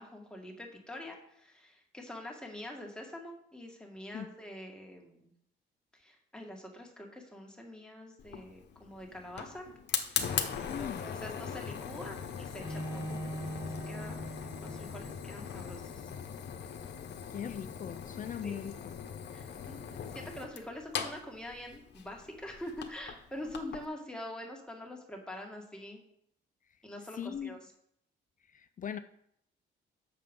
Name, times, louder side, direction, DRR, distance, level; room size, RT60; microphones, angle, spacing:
voice 1, 0.0-5.3 5.9-9.7 10.0-10.3 10.6-14.2 14.6-16.0 18.4-18.6 19.3-19.8 20.1-26.0 26.8-27.7, left 1 dB, 5° left, 0 dB, 2.0 m, -45 dB
Fire, 8.2-23.9, left 7 dB, 60° left, 1.0 m, -40 dB
voice 2, 10.7-11.1 17.3-19.0 27.2-27.6 28.5-29.0, left 8 dB, 40° left, 10 dB, 0.5 m, -39 dB
Bowed string instrument, 12.6-15.6, right 1 dB, 15° right, 2.9 m, -41 dB
7.4 x 6.8 x 5.4 m, 0.72 s
cardioid pair, 90°, 20 cm